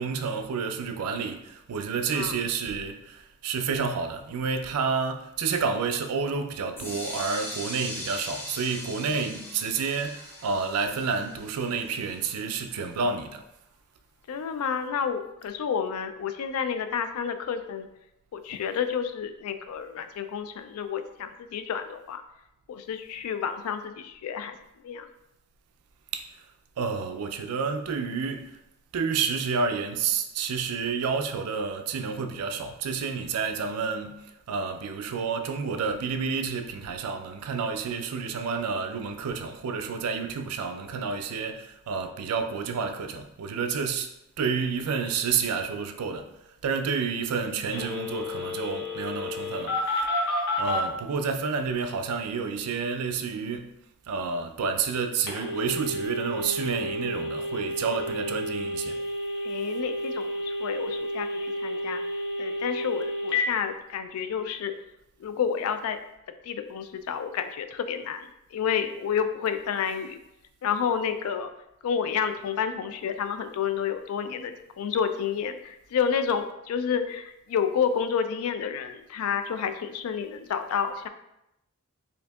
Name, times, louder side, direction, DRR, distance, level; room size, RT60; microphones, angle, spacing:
voice 1, 0.0-13.4 26.1-26.3 26.8-28.6 28.9-44.1 44.4-46.3 46.6-53.7 54.1-59.0, right 5 dB, 90° right, 0.4 m, -30 dB
sound 1, 6.8-12.6, left 1 dB, 10° left, 0.6 m, -40 dB
voice 2, 14.3-17.9 18.3-22.2 22.7-24.6 24.8-25.1 59.4-62.0 62.4-64.7 65.2-66.0 66.4-70.2 70.6-71.5 71.8-81.1, left 7 dB, 80° left, 0.3 m, -30 dB
Telephone, 47.7-50.8 55.3-63.4, left 2 dB, 55° left, 0.9 m, -31 dB
4.5 x 2.7 x 2.2 m
head